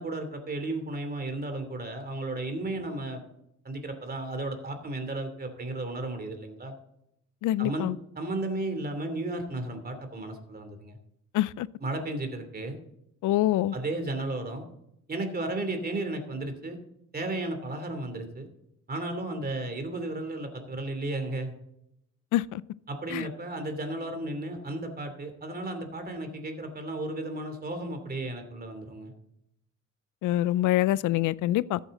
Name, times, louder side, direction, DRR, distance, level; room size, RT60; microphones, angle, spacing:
voice 1, 0.0-3.2 3.6-6.7 7.6-7.9 8.2-11.0 11.8-12.8 13.7-14.6 15.1-16.8 17.1-18.5 18.9-21.5 22.9-29.1, right 2 dB, 30° right, 2.9 m, -34 dB
voice 2, 7.4-8.0 11.3-11.7 13.2-13.7 22.3-22.6 23.1-23.3 30.2-31.8, left 15 dB, 80° left, 0.5 m, -25 dB
14.0 x 8.2 x 3.8 m
cardioid pair, 90°, 30 cm